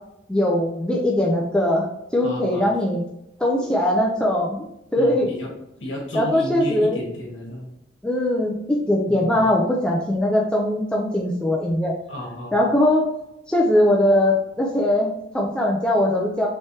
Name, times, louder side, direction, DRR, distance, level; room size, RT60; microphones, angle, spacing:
voice 1, 0.3-1.9 2.1-3.0 3.4-4.7 4.9-5.3 6.1-7.0 8.0-12.0 12.5-13.1 13.5-16.5, left 1 dB, 5° left, -2 dB, 0.4 m, -20 dB
voice 2, 2.2-2.7 5.0-5.5 5.8-7.7 9.1-9.5 12.1-12.7, left 1 dB, 65° left, -2 dB, 1.2 m, -33 dB
3.3 x 3.1 x 2.8 m, 0.81 s
head